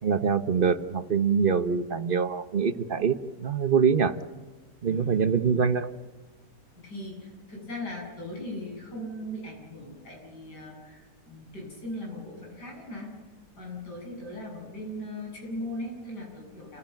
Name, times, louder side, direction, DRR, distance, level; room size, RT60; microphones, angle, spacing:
voice 1, 0.0-4.2 4.8-5.9, right 6 dB, 40° right, 11 dB, 1.0 m, -24 dB
voice 2, 4.8-5.7 6.8-13.1 13.6-16.8, left 1 dB, 80° left, -1 dB, 8.7 m, -39 dB
28.5 x 16.5 x 9.0 m, 1.3 s
omnidirectional pair, 1.8 m